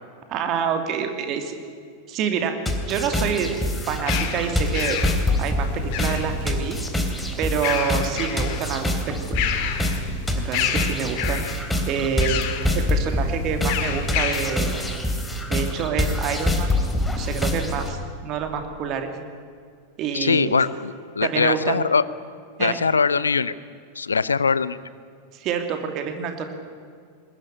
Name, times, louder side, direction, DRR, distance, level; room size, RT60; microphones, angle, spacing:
voice 1, 0.3-1.6 2.1-2.6 2.9-3.5 3.9-5.0 5.4-6.8 7.4-9.6 10.3-12.4 12.7-14.7 15.5-16.7 17.2-19.1 20.0-20.6 21.2-21.7 22.6-22.8 25.3-26.5, right 7 dB, 35° right, 6 dB, 2.9 m, -27 dB
sound 1, 2.7-17.9, left 1 dB, 5° left, 3.4 m, -25 dB
sound 2, 3.5-6.6 7.4-8.7 9.1-10.1 10.5-11.6 12.2-12.7 13.7-14.6, left 9 dB, 45° left, 2.1 m, -29 dB
voice 2, 20.1-22.0 22.6-23.5 24.0-24.8, left 5 dB, 75° left, 18 dB, 0.8 m, -21 dB
21.0 x 20.0 x 9.8 m, 2.2 s
figure-of-eight pair, 90°, 0 cm